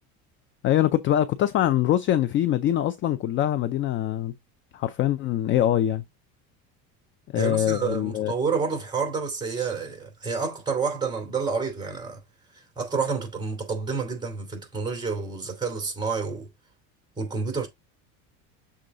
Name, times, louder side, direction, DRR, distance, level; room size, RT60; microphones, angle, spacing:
voice 1, 0.6-4.3 4.7-6.0 7.3-8.3, left 12 dB, 35° left, 0.4 m, -23 dB
voice 2, 7.3-12.2 12.5-16.5 17.2-17.7, right 5 dB, 10° right, 2.7 m, -29 dB
7.0 x 3.6 x 3.7 m
cardioid pair, 140°, 38 cm